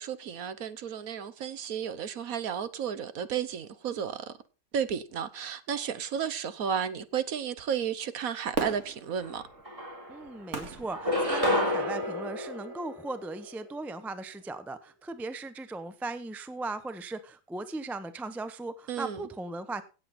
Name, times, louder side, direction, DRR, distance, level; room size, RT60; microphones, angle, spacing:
voice 1, 0.0-4.3 4.7-9.4 18.9-19.3, right 8 dB, 60° right, 1.3 m, -33 dB
Fireworks, 8.5-11.9 12.4-12.5, right 3 dB, 45° right, 2.3 m, -38 dB
sound 1, 9.2-9.3 9.6-10.4 10.9-13.5, left 1 dB, 20° right, 3.4 m, -30 dB
voice 2, 10.1-19.8, right 2 dB, ahead, 0.3 m, -38 dB
16.5 x 7.7 x 4.2 m
omnidirectional pair, 1.7 m